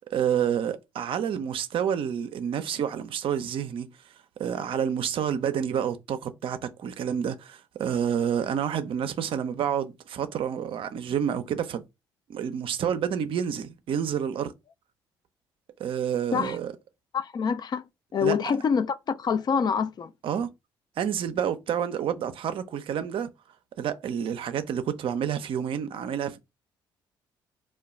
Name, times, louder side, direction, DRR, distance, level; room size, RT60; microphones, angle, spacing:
voice 1, 0.1-3.9 4.4-11.8 12.3-14.5 15.8-16.7 18.2-18.4 20.2-20.5 21.0-23.3 23.8-26.4, right 8 dB, 60° right, 0.4 m, -29 dB
voice 2, 17.1-17.9 18.1-20.1, left 6 dB, 40° left, 0.4 m, -26 dB
2.2 x 2.1 x 3.9 m
hypercardioid pair, 55°, 10 cm